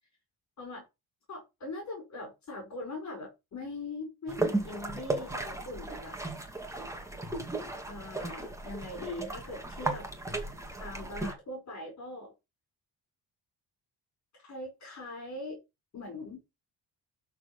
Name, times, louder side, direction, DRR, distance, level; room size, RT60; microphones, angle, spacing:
voice 1, 1.3-6.2 7.9-10.1 10.8-12.3 14.4-15.6 15.9-16.4, left 2 dB, 45° left, 4.9 m, -41 dB
sound 1, 4.3-11.3, right 2 dB, 5° right, 2.3 m, -35 dB
12.5 x 4.7 x 6.0 m
cardioid pair, 145°, 40 cm